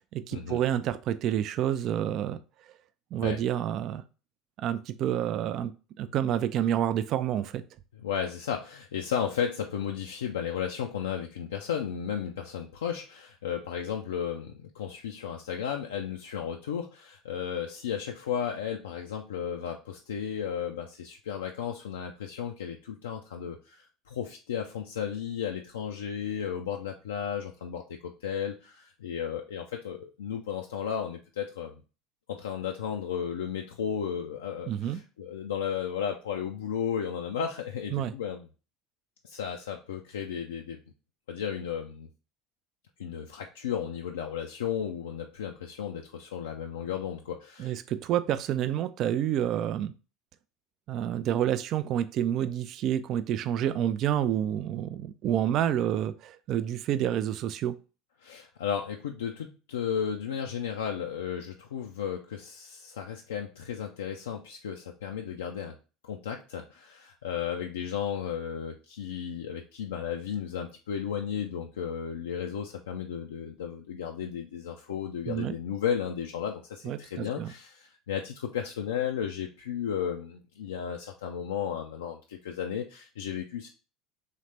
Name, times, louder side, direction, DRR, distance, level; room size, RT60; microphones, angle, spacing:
voice 1, 0.1-2.4 3.1-4.0 4.6-5.7 6.0-7.6 34.7-35.0 37.9-38.1 47.6-49.9 50.9-57.8 75.3-75.5 76.8-77.5, right 10 dB, 45° right, 13 dB, 0.3 m, -28 dB
voice 2, 8.0-31.7 32.3-38.5 39.2-40.8 41.3-42.1 43.0-47.8 58.2-65.8 66.0-83.7, left 8 dB, 70° left, 2 dB, 0.4 m, -34 dB
4.0 x 3.2 x 3.1 m, 0.33 s
figure-of-eight pair, 65°, 0 cm